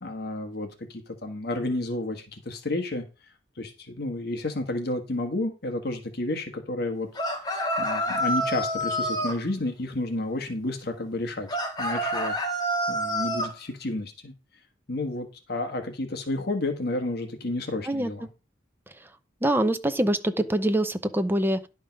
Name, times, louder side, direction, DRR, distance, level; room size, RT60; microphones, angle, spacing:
voice 1, 0.0-3.0 3.6-7.1 7.8-11.5 11.8-12.4 12.9-14.3 14.9-18.3, left 2 dB, 55° left, 1.5 m, -31 dB
sound 1, 7.2-9.4 11.5-13.5, equal, 20° left, 1.9 m, -27 dB
voice 2, 19.4-21.7, right 1 dB, 10° right, 0.6 m, -24 dB
11.0 x 5.3 x 5.2 m
head